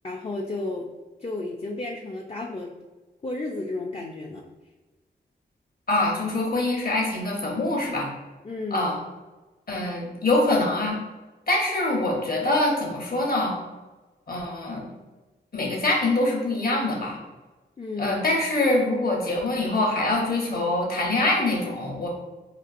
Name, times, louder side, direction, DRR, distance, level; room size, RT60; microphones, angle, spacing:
voice 1, 0.0-0.9 1.2-2.7 3.2-4.5 8.4-8.9 17.8-18.2, left 2 dB, 30° left, 0 dB, 0.5 m, -32 dB
voice 2, 5.9-8.1 8.7-9.0 9.7-11.0 11.5-13.6 14.3-14.9 15.5-17.2 18.0-22.1, left 2 dB, 50° left, -1 dB, 1.2 m, -24 dB
4.3 x 2.4 x 2.5 m, 1.2 s
supercardioid pair, 40°, 20 cm